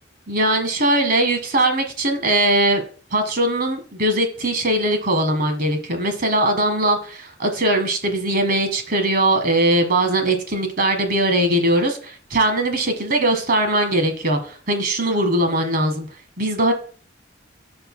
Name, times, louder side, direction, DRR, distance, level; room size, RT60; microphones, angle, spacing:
voice 1, 0.3-2.8 3.1-16.1 16.4-16.7, right 1 dB, 55° right, 1.6 m, -20 dB
13.0 x 5.3 x 2.2 m
head